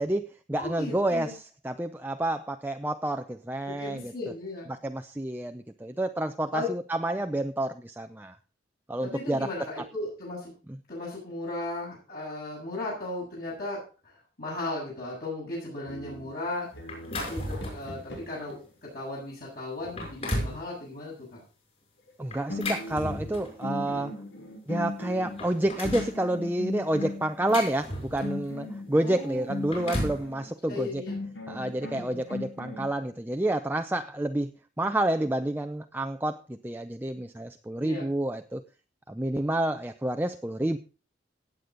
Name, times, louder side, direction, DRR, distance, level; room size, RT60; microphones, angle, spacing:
voice 1, 0.0-4.1 4.7-8.4 8.9-9.5 22.2-24.2 24.7-31.0 31.5-34.5 34.8-38.6 39.1-40.8, right 1 dB, 10° right, 6 dB, 0.6 m, -29 dB
voice 2, 0.5-1.3 3.8-4.7 6.5-6.7 9.0-10.5 10.9-16.7 17.1-21.4 29.0-29.5 30.6-31.2 31.9-32.2 37.8-38.1, left 2 dB, 55° left, -5 dB, 7.3 m, -36 dB
sound 1, 15.9-18.5 22.1-22.2 22.5-27.6 28.2-30.5 31.1-32.9, left 2 dB, 85° left, 6.0 m, -38 dB
sound 2, 16.9-17.9 18.5-18.7 19.3-19.4 19.8-20.6 22.3-23.6 24.7-24.8 25.1-26.2 27.0-28.4 29.4-30.2, left 1 dB, 35° left, 6.2 m, -34 dB
17.0 x 8.4 x 3.9 m, 0.34 s
head